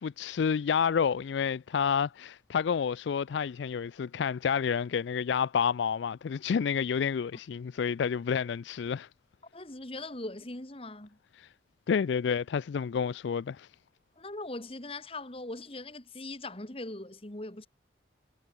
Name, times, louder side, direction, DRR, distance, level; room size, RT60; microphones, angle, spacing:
voice 1, 0.0-9.1 11.9-13.7, left 7 dB, 65° left, 0.3 m, -29 dB
voice 2, 9.5-11.2 14.2-17.7, left 2 dB, 30° left, 1.8 m, -40 dB
head